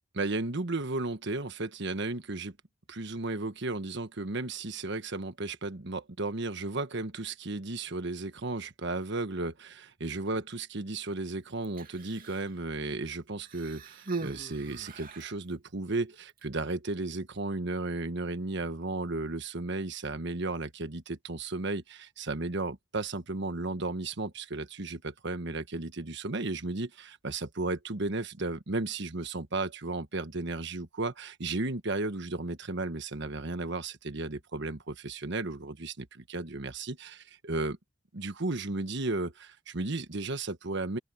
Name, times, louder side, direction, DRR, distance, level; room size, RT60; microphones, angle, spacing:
voice 1, 0.1-2.6 2.9-37.8 38.1-41.0, right 2 dB, 65° right, 1.4 m, -34 dB
Human voice, 11.6-12.5 13.4-15.4 16.3-16.4, right 3 dB, 45° right, 2.5 m, -40 dB
open air
head